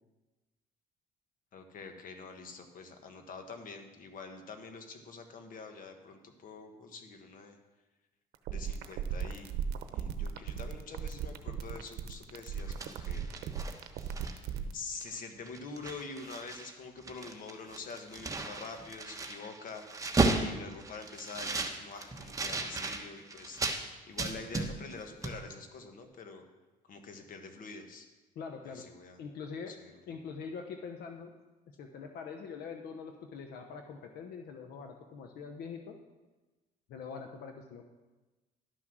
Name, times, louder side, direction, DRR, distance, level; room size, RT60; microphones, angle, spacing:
voice 1, 1.5-7.6 8.5-9.6 9.9-13.2 14.6-23.6 24.1-26.4 26.9-28.0 28.6-29.2 29.7-29.9, left 4 dB, 55° left, 6 dB, 1.4 m, -46 dB
sound 1, 8.3-14.7, right 8 dB, 75° right, 0.8 m, -36 dB
sound 2, 12.5-14.6 15.0-15.2 15.4-16.7 17.0-23.8 24.2-25.0 25.2-25.4, right 3 dB, 20° right, 1.1 m, -35 dB
voice 2, 28.3-28.8 29.2-29.7 30.1-31.3 31.8-35.9 36.9-37.9, left 5 dB, 70° left, 4 dB, 0.9 m, -43 dB
11.5 x 6.1 x 6.2 m, 1.2 s
cardioid pair, 110°, 17 cm